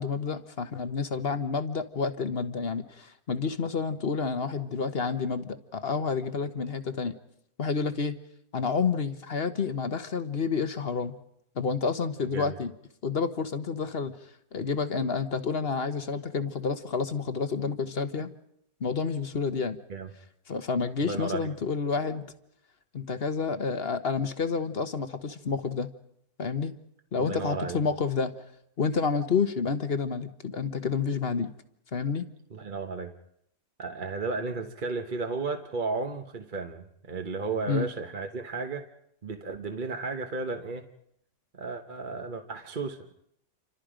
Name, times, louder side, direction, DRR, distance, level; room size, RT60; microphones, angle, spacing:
voice 1, 0.0-7.1 7.6-8.2 8.5-11.1 11.6-12.7 13.0-14.2 14.5-18.3 18.8-19.8 20.5-22.3 22.9-25.9 26.4-26.8 27.1-28.3 28.8-31.5 31.9-32.3 37.7-37.9, left 5 dB, 45° left, 10 dB, 1.3 m, -29 dB
voice 2, 21.0-21.5 27.1-27.8 32.5-33.1 33.8-38.9 39.2-40.8 41.5-43.1, right 4 dB, 35° right, 5 dB, 1.1 m, -34 dB
28.5 x 25.0 x 5.1 m, 0.75 s
omnidirectional pair, 1.6 m